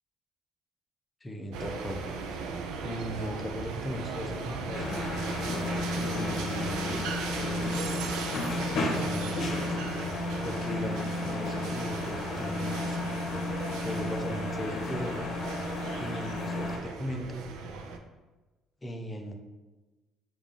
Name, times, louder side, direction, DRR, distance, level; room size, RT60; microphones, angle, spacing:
voice 1, 1.2-2.0 2.3-5.0 6.0-8.1 8.7-9.8 10.4-13.0 13.7-15.2 16.0-17.5 18.8-19.3, equal, 15° left, 3 dB, 0.6 m, -38 dB
sound 1, 1.5-18.0, right 4 dB, 80° right, 0.4 m, -38 dB
sound 2, 4.7-16.8, left 2 dB, 55° left, 1.0 m, -33 dB
4.9 x 2.5 x 3.6 m, 1.2 s
cardioid pair, 95°, 0 cm